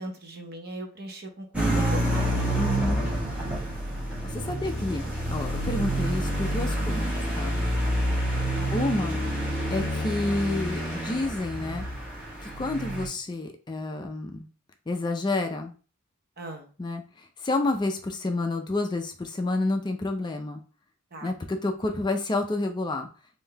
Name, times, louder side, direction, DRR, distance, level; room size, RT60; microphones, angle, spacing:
voice 1, 0.0-2.5 8.5-8.7 16.4-16.6 21.1-21.3, right 1 dB, 50° right, 3 dB, 0.8 m, -39 dB
sound 1, 1.5-13.1, right 1 dB, 5° right, 1.1 m, -28 dB
voice 2, 2.5-3.1 3.4-3.5 4.2-7.1 7.4-7.6 8.7-9.2 9.7-11.8 12.4-14.5 14.9-15.7 16.8-20.6 21.2-23.1, left 2 dB, 20° left, 5 dB, 0.4 m, -29 dB
3.7 x 2.6 x 3.3 m, 0.37 s
head